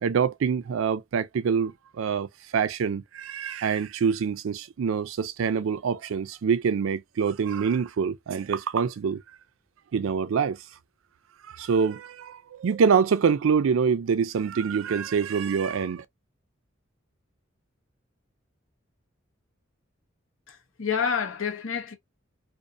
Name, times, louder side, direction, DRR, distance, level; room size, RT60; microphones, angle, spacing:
voice 1, 0.0-9.2 9.9-10.6 11.5-16.0, right 6 dB, 85° right, 0.4 m, -25 dB
voice 2, 20.5-21.9, left 6 dB, 80° left, 0.9 m, -28 dB
2.6 x 2.4 x 2.4 m
head